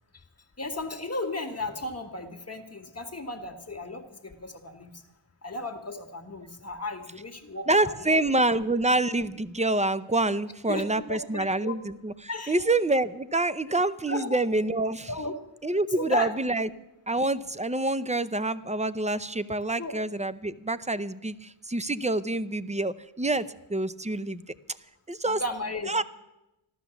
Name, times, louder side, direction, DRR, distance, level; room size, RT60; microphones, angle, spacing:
voice 1, 0.6-5.0 5.4-8.2 10.7-11.8 12.3-12.7 14.1-14.4 15.1-15.3 16.0-16.3 19.8-20.0 25.3-26.0, left 2 dB, 30° left, 4 dB, 1.8 m, -35 dB
voice 2, 7.7-12.1 12.5-15.1 15.6-16.7 17.1-24.4 25.1-25.4 25.9-26.0, right 2 dB, 15° right, 14 dB, 0.6 m, -27 dB
14.5 x 12.5 x 7.1 m, 0.92 s
wide cardioid pair, 60°, 50 cm